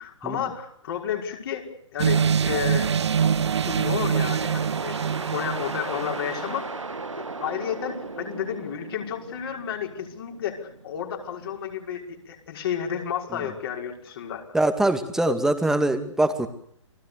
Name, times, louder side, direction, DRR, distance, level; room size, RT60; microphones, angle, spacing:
voice 1, 0.0-2.9 3.2-3.4 3.6-6.7 7.2-14.4, left 9 dB, 50° left, 1 dB, 5.7 m, -32 dB
sound 1, 2.0-6.4, right 7 dB, 60° right, 1.0 m, -24 dB
sound 2, 4.1-11.6, right 3 dB, 80° right, 2.3 m, -37 dB
voice 2, 14.5-16.5, right 1 dB, 5° right, 8 dB, 2.2 m, -23 dB
29.5 x 20.5 x 6.9 m, 0.67 s
figure-of-eight pair, 125°, 16 cm